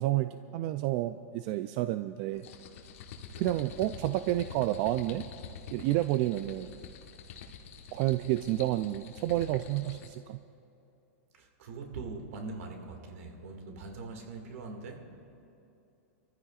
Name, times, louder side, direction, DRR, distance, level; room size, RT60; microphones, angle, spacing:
voice 1, 0.0-2.5 3.4-5.3 5.7-6.7 7.9-10.4, right 15 dB, 40° right, 11 dB, 0.4 m, -30 dB
sound 1, 2.3-10.2, left 6 dB, 65° left, 1.4 m, -47 dB
voice 2, 11.4-15.1, right 3 dB, 70° right, 3 dB, 2.1 m, -42 dB
27.5 x 14.5 x 2.5 m, 2.7 s
supercardioid pair, 145°, 8 cm